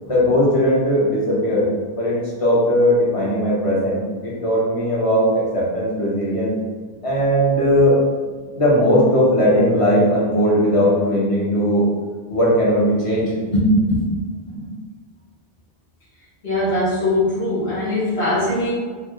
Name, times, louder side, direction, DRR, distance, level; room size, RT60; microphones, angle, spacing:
voice 1, 0.0-1.7 1.9-4.0 4.2-6.5 7.0-8.0 8.5-11.9 12.3-14.0 14.5-14.6, equal, 35° left, -7 dB, 1.1 m, -18 dB
voice 2, 16.4-18.7, left 2 dB, 75° left, -13 dB, 1.7 m, -21 dB
4.5 x 2.3 x 3.1 m, 1.5 s
omnidirectional pair, 1.0 m